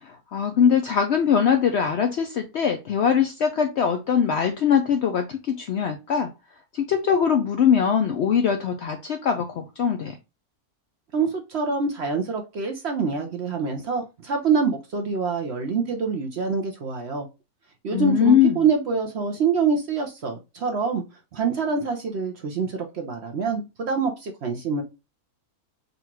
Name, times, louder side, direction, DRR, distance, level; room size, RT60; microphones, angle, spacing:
voice 1, 0.0-6.3 6.7-10.2 17.9-18.6, left 7 dB, 70° left, 5 dB, 0.6 m, -22 dB
voice 2, 11.1-17.3 17.8-21.0 21.3-24.8, right 5 dB, 60° right, 3 dB, 0.8 m, -25 dB
3.9 x 2.4 x 4.3 m, 0.27 s
omnidirectional pair, 1.6 m